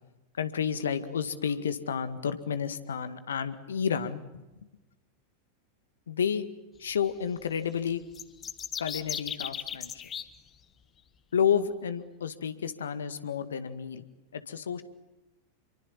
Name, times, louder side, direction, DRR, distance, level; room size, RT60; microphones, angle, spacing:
voice 1, 0.4-4.2 6.1-6.4 6.8-8.0 8.8-10.0 11.3-14.0 14.3-14.8, left 7 dB, 65° left, 11 dB, 1.9 m, -30 dB
sound 1, 8.1-10.2, left 8 dB, 25° left, 1.4 m, -36 dB
28.5 x 23.5 x 7.4 m, 1.0 s
figure-of-eight pair, 90°, 0 cm